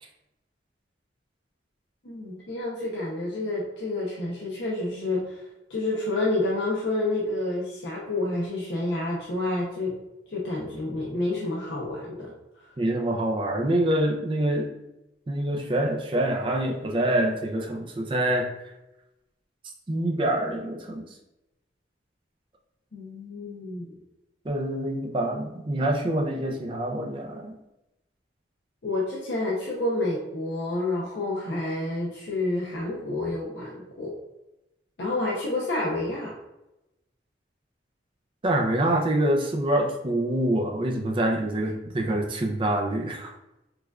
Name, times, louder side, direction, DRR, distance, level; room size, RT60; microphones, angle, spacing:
voice 1, 2.0-9.9 10.3-12.7 22.9-23.9 28.8-34.1 35.0-36.3, left 2 dB, 70° left, -4 dB, 0.7 m, -29 dB
voice 2, 12.8-14.7 15.3-18.5 19.9-21.1 24.4-27.5 38.4-43.3, right 1 dB, 30° right, 2 dB, 0.4 m, -26 dB
4.9 x 2.3 x 2.4 m, 0.94 s
head